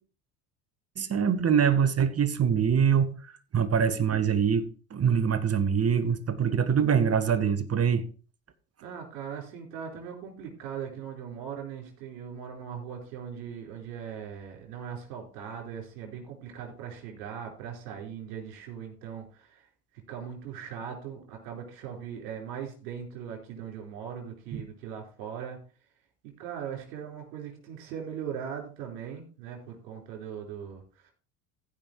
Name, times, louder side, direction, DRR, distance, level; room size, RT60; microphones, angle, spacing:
voice 1, 1.0-3.2 3.5-8.1 24.5-24.6, right 7 dB, 30° right, 1.4 m, -24 dB
voice 2, 8.8-19.7 20.1-25.6 26.4-31.1, right 8 dB, 80° right, 4.7 m, -39 dB
15.5 x 5.5 x 4.7 m
hypercardioid pair, 75°, 46 cm